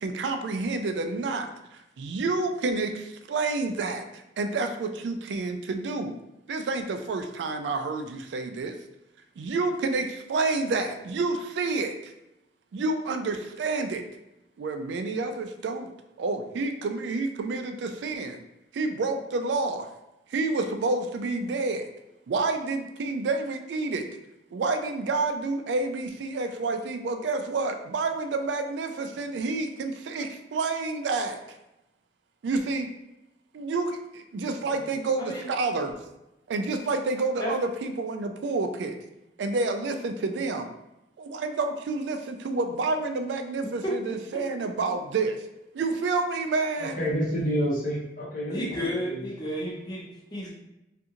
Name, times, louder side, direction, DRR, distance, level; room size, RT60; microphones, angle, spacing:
voice 1, 0.0-4.1 4.4-6.2 6.5-8.7 9.4-12.1 12.7-14.0 14.6-15.9 16.2-18.4 18.7-19.9 20.3-21.9 22.3-24.1 24.5-31.4 32.4-32.9 33.5-36.0 36.5-39.0 39.4-40.7 41.2-45.4 45.7-47.0, right 3 dB, 80° right, 6 dB, 0.3 m, -29 dB
voice 2, 46.8-49.2, equal, 50° left, -6 dB, 1.0 m, -29 dB
voice 3, 48.5-50.5, equal, 25° left, -5 dB, 0.8 m, -32 dB
2.5 x 2.4 x 2.8 m, 0.91 s
head